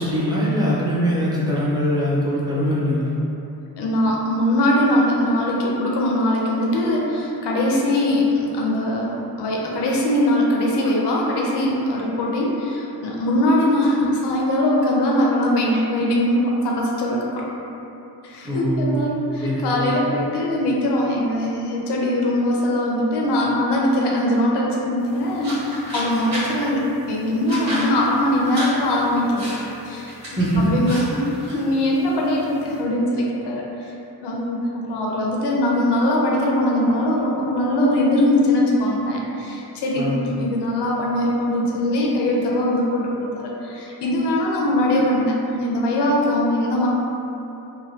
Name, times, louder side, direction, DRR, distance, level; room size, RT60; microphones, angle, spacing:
voice 1, 0.0-3.2 18.4-19.1 19.4-20.1 30.4-30.8 40.0-40.3, equal, 10° right, -7 dB, 0.5 m, -22 dB
voice 2, 3.8-17.4 18.2-29.5 29.8-31.3 31.5-33.9 34.2-46.9, left 1 dB, 85° left, -2 dB, 0.6 m, -21 dB
sound 1, 25.0-32.8, equal, 40° right, 1.1 m, -34 dB
3.1 x 2.2 x 2.7 m, 2.9 s
wide cardioid pair, 125°, 40 cm